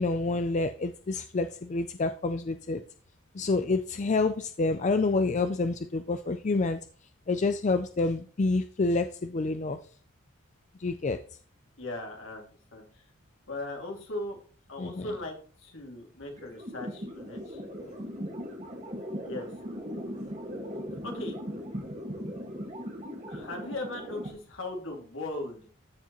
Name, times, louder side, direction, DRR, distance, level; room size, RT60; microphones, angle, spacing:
voice 1, 0.0-2.8 3.4-6.8 7.3-9.8 10.8-11.2 14.8-15.1, left 3 dB, 35° left, 0.4 m, -28 dB
voice 2, 11.8-12.8 13.5-14.4 14.7-17.6 19.2-19.5 21.0-21.3 23.3-25.7, left 2 dB, 70° left, 2.5 m, -38 dB
sound 1, 16.4-24.3, equal, 35° right, 1.8 m, -38 dB
13.5 x 4.8 x 3.1 m
head